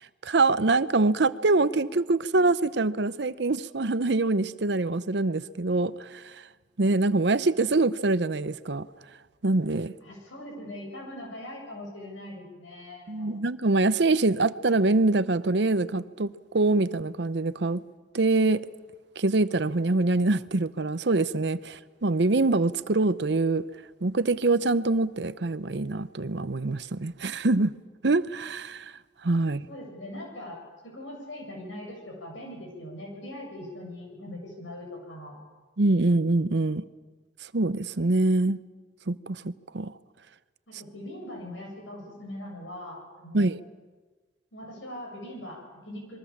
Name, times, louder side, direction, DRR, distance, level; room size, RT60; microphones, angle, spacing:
voice 1, 0.0-6.4 6.8-8.9 9.4-9.9 13.1-17.8 18.1-18.7 19.2-23.6 24.0-27.7 28.0-28.9 29.2-29.6 35.8-36.8 37.5-38.6 39.1-39.9 43.3-43.6, right 2 dB, 60° right, 0.8 m, -24 dB
voice 2, 10.0-13.3 29.7-35.4 40.7-43.5 44.5-46.2, left 1 dB, 85° left, 7.8 m, -41 dB
27.0 x 22.0 x 7.3 m
head